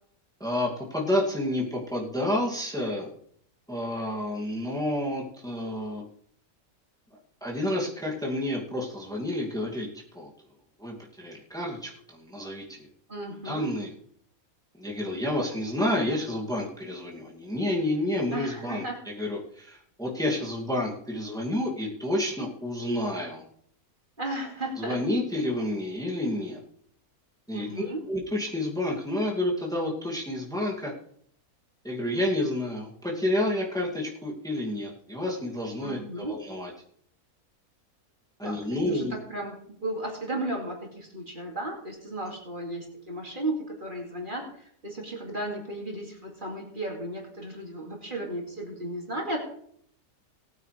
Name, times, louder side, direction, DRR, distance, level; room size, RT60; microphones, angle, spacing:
voice 1, 0.4-3.1 3.7-6.0 7.1-9.9 10.1-10.3 10.8-12.9 13.4-13.9 14.8-23.4 24.8-26.6 27.5-30.9 31.8-36.7 38.4-39.2, left 1 dB, ahead, -3 dB, 2.4 m, -30 dB
voice 2, 13.1-13.7 18.3-19.0 24.2-25.0 27.5-28.0 35.8-36.4 38.4-49.4, right 1 dB, 35° right, -1 dB, 2.7 m, -35 dB
19.5 x 9.0 x 3.4 m, 0.65 s
omnidirectional pair, 1.5 m